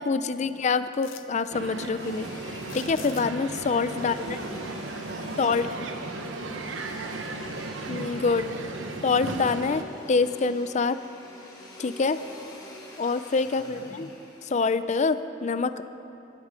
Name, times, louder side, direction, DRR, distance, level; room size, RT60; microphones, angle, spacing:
voice 1, 0.0-2.4 2.7-4.4 5.4-5.7 7.9-8.4 9.0-9.8 10.1-11.0 11.8-12.2 13.0-14.1 14.4-15.7, left 4 dB, 35° left, 12 dB, 0.4 m, -25 dB
sound 1, 0.9-1.5 2.5-3.6 6.1-6.2 6.7-7.4 7.8-8.9 9.3-9.4, left 11 dB, 85° left, 0.6 m, -47 dB
Crowd, 1.5-9.8, right 2 dB, 80° right, 1.0 m, -36 dB
Domestic sounds home sounds, 2.0-14.8, left 1 dB, 20° left, 2.5 m, -46 dB
voice 2, 3.9-7.7 8.2-8.8 13.4-13.9, right 1 dB, 65° right, -1 dB, 2.1 m, -44 dB
15.0 x 14.0 x 5.1 m, 2.8 s
head